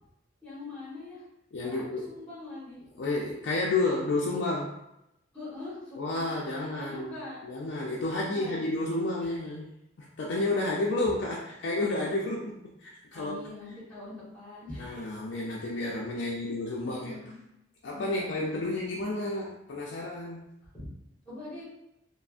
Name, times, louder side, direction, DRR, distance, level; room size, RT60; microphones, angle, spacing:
voice 1, 0.4-1.2 1.6-2.8 5.3-7.4 8.1-8.6 9.2-9.3 13.1-15.0 16.1-16.2 16.8-17.4 17.9-18.8 20.7-20.9 21.2-21.6, left 2 dB, 5° left, -9 dB, 1.2 m, -43 dB
voice 2, 1.5-2.1 3.0-4.7 6.0-7.1 7.4-9.7 10.0-12.5 12.8-13.4 14.8-17.2 17.8-20.5, left 2 dB, 70° left, -3 dB, 0.4 m, -31 dB
3.2 x 2.0 x 2.4 m, 0.85 s
head